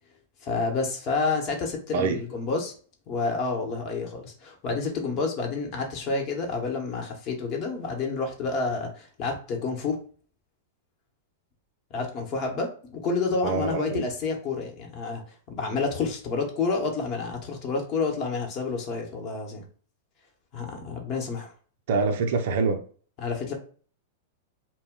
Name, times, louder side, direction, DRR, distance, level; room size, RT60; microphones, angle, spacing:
voice 1, 0.4-2.7 3.1-10.0 11.9-15.2 15.5-19.6 20.5-21.5 23.2-23.5, left 4 dB, 45° left, 0.9 m, -29 dB
voice 2, 13.4-14.1 21.9-22.8, right 4 dB, 65° right, 0.4 m, -25 dB
2.1 x 2.1 x 3.6 m
hypercardioid pair, 110°, 0 cm